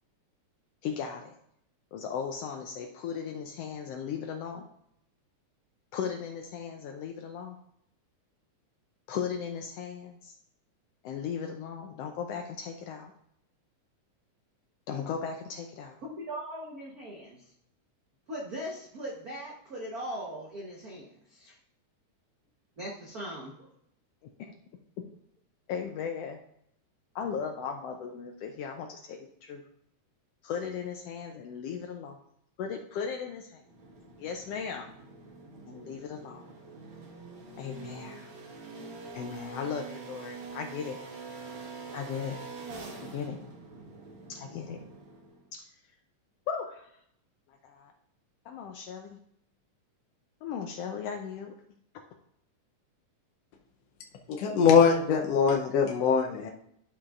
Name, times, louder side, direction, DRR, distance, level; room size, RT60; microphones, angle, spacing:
voice 1, 0.8-1.3 1.9-4.6 5.9-7.6 9.1-10.3 11.0-13.1 14.9-16.0 24.2-24.5 25.7-26.4 27.1-29.6 30.4-32.2 32.6-33.6 34.2-34.9 35.7-36.5 37.6-38.3 39.1-41.0 41.9-42.4 43.1-43.4 44.3-44.8 45.5-45.6 46.5-46.9 47.6-47.9 48.4-49.2 50.4-51.5, left 7 dB, 90° left, 3 dB, 1.3 m, -37 dB
voice 2, 16.2-17.5 18.3-21.6 22.8-23.7, right 1 dB, 90° right, -3 dB, 0.8 m, -40 dB
sound 1, 33.6-45.5, right 3 dB, 55° right, 1.6 m, -45 dB
voice 3, 54.3-56.5, left 6 dB, 70° left, 1 dB, 1.6 m, -22 dB
12.5 x 5.8 x 2.4 m, 0.72 s
omnidirectional pair, 3.5 m